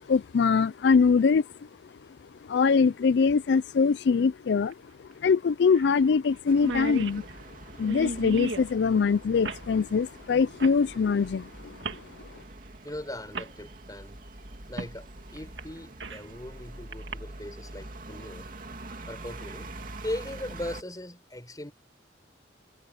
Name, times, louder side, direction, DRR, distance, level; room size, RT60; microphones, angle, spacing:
voice 1, 0.0-1.5 2.4-7.2 7.8-12.0, left 5 dB, 65° left, 0.4 m, -23 dB
sound 1, 2.8-2.9 4.7-4.8 5.1-5.2 5.8-6.0 6.2-6.3 6.5-8.7 9.4-9.7 10.6-10.8 11.8-12.1 12.9-13.0 13.3-13.5 14.8-15.0 15.4-16.3 16.9-17.1, right 2 dB, 75° right, 2.6 m, -35 dB
sound 2, 6.4-20.8, right 2 dB, 50° right, 2.5 m, -45 dB
voice 2, 12.8-14.2 14.7-18.5 19.1-19.7 20.0-21.7, left 1 dB, 20° left, 5.0 m, -39 dB
head